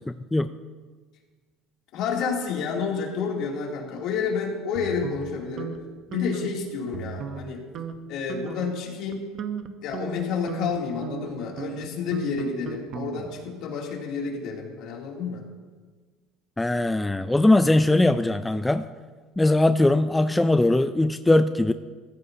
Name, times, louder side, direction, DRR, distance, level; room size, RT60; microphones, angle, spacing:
voice 1, 1.9-5.8 6.1-7.6 8.1-9.2 9.8-15.4, left 5 dB, 60° left, -1 dB, 2.8 m, -30 dB
sound 1, 4.8-5.8 6.1-6.5 6.9-7.5 7.8-8.0 8.3-8.7 9.1-13.5, right 7 dB, 45° right, 0.9 m, -36 dB
voice 2, 16.6-18.8 19.4-21.7, left 2 dB, 10° left, 10 dB, 0.4 m, -20 dB
16.0 x 14.5 x 2.8 m, 1.5 s
cardioid pair, 125°, 0 cm